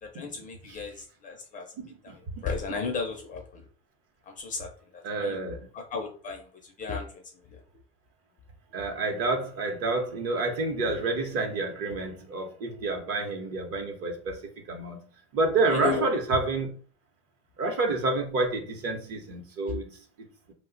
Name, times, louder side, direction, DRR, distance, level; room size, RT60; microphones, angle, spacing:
voice 1, 0.0-3.6 4.2-5.4 5.7-7.2 7.5-7.6 15.7-16.1 19.7-19.8, left 4 dB, 25° left, 0.4 m, -35 dB
voice 2, 1.8-2.5 5.0-5.7 8.7-15.0 15.3-16.7 17.6-19.9, right 3 dB, 45° right, 0.8 m, -29 dB
2.8 x 2.1 x 3.8 m
supercardioid pair, 140°, 34 cm